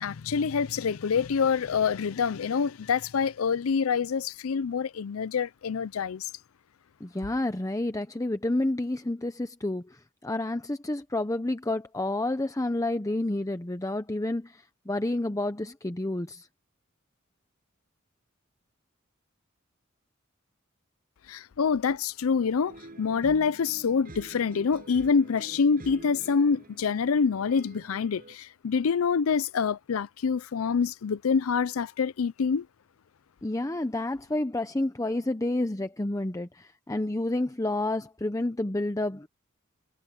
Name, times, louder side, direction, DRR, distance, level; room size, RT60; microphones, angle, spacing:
voice 1, 0.0-6.3 21.3-32.6, left 5 dB, 90° left, 0.5 m, -26 dB
voice 2, 7.0-10.0 10.2-16.5 33.4-39.3, left 1 dB, 15° left, 0.7 m, -29 dB
sound 1, 22.7-28.4, right 1 dB, 45° right, 7.0 m, -47 dB
head